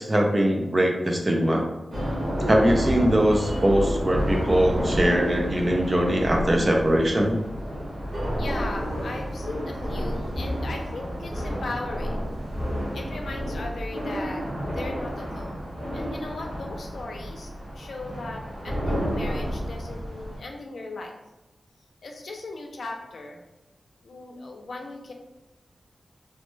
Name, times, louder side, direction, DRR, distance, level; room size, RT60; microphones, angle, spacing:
voice 1, 0.0-1.7 2.5-7.4, right 1 dB, 30° right, 2 dB, 0.4 m, -22 dB
sound 1, 1.9-20.4, equal, 65° right, 1.1 m, -30 dB
voice 2, 8.4-12.2 12.9-14.4 14.7-15.6 15.9-21.1 22.0-23.4 24.0-25.1, left 2 dB, 80° left, 2 dB, 0.5 m, -37 dB
3.2 x 2.1 x 3.1 m, 0.99 s
wide cardioid pair, 125°, 0 cm